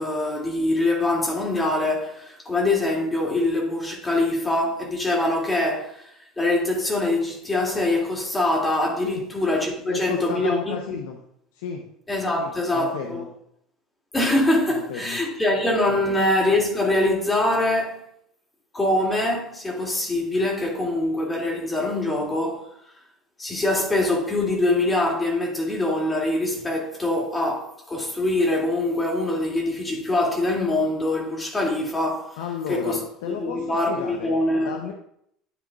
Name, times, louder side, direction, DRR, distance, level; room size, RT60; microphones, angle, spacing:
voice 1, 0.0-10.8 12.1-13.2 14.1-18.0 18.7-22.7 23.4-32.4 32.7-34.7, left 2 dB, 20° left, 2.5 m, -24 dB
voice 2, 9.9-11.2 11.5-11.8 12.4-13.3 14.7-15.2 15.9-16.1 32.4-34.3 34.6-34.9, left 7 dB, 75° left, 0.8 m, -33 dB
10.5 x 7.4 x 2.4 m
hypercardioid pair, 70°, 0 cm